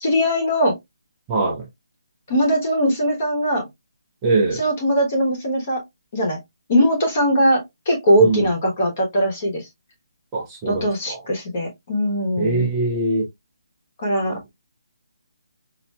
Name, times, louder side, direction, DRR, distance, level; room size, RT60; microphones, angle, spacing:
voice 1, 0.0-0.8 2.3-3.7 4.6-5.8 6.1-6.4 6.7-9.7 10.7-12.7 14.0-14.4, equal, 25° left, 1.1 m, -20 dB
voice 2, 1.3-1.7 4.2-4.6 8.2-8.5 10.3-11.2 12.4-13.3 14.3-14.4, right 3 dB, 10° right, 0.6 m, -22 dB
5.3 x 2.7 x 2.3 m
hypercardioid pair, 180°, 2 cm